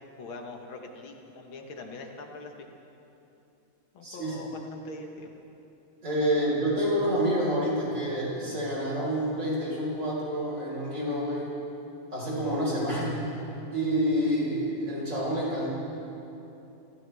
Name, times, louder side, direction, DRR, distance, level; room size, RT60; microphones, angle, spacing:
voice 1, 0.2-2.5 3.9-5.3 6.3-6.4 12.9-13.1, left 3 dB, 80° left, 3 dB, 2.1 m, -43 dB
voice 2, 4.0-4.4 6.0-11.5 12.1-13.1 13.7-15.7, equal, 40° right, -5 dB, 5.2 m, -28 dB
26.5 x 15.5 x 3.5 m, 2.9 s
omnidirectional pair, 2.2 m